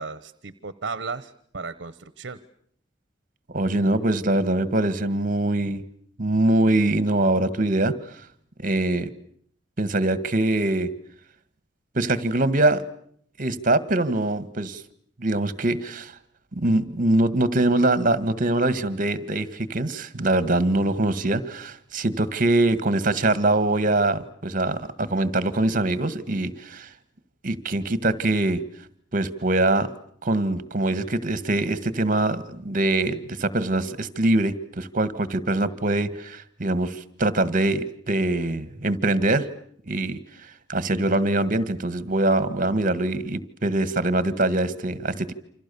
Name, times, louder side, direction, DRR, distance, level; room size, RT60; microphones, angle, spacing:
voice 1, 0.0-2.4, right 4 dB, 65° right, 15 dB, 1.1 m, -35 dB
voice 2, 3.5-5.8 6.2-7.9 8.6-9.1 9.8-10.9 11.9-12.8 13.4-14.8 15.2-16.1 16.5-26.9 27.4-28.6 29.1-29.9 30.2-39.5 39.9-45.3, right 2 dB, 45° right, 15 dB, 1.8 m, -23 dB
28.5 x 26.5 x 7.0 m, 0.65 s
head